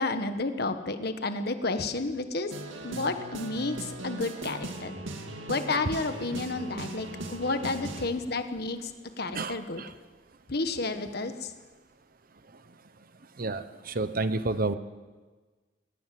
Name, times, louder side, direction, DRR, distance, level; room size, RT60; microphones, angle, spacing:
voice 1, 0.0-2.5 2.8-3.8 4.0-4.9 5.5-8.9 9.2-9.8 10.5-11.5, left 3 dB, 55° left, 8 dB, 1.5 m, -31 dB
sound 1, 2.5-8.1, right 2 dB, 80° right, 2.2 m, -39 dB
voice 2, 9.3-9.9 13.4-14.8, right 3 dB, 45° right, 12 dB, 1.0 m, -30 dB
20.5 x 19.5 x 7.8 m, 1.4 s
head